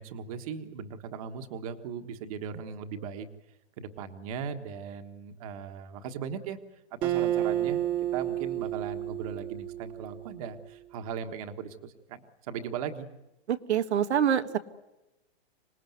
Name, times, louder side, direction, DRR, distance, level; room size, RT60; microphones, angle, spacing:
voice 1, 0.0-3.3 3.8-6.6 6.9-13.1, right 7 dB, 35° right, 7 dB, 1.5 m, -38 dB
Acoustic guitar, 7.0-10.5, right 12 dB, 15° right, 1.3 m, -31 dB
voice 2, 13.5-14.6, right 9 dB, 85° right, 8 dB, 1.5 m, -25 dB
26.5 x 19.0 x 9.3 m, 0.97 s
hypercardioid pair, 175°, 32 cm